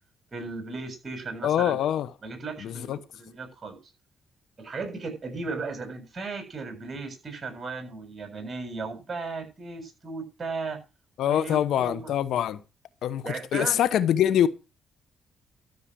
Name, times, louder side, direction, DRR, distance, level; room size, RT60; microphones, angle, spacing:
voice 1, 0.3-1.8 2.2-3.8 4.6-10.8 11.2-12.1 13.2-13.8, right 4 dB, 35° right, 7.0 m, -36 dB
voice 2, 1.4-2.1 2.6-3.0 11.2-12.6 13.0-14.5, left 10 dB, 75° left, 0.9 m, -24 dB
13.0 x 7.2 x 6.2 m
cardioid pair, 70°, 0 cm